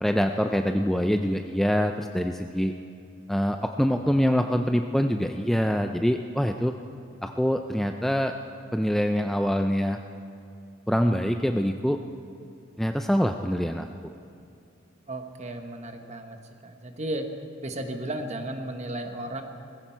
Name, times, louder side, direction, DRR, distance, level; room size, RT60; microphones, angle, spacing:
voice 1, 0.0-2.7 3.3-6.7 7.2-8.3 8.7-10.0 10.9-12.0 12.8-13.9, equal, ahead, 5 dB, 0.3 m, -25 dB
voice 2, 15.1-16.4 16.6-17.3 17.6-19.4, right 1 dB, 35° right, 5 dB, 1.1 m, -34 dB
19.0 x 15.5 x 4.5 m, 2.5 s
head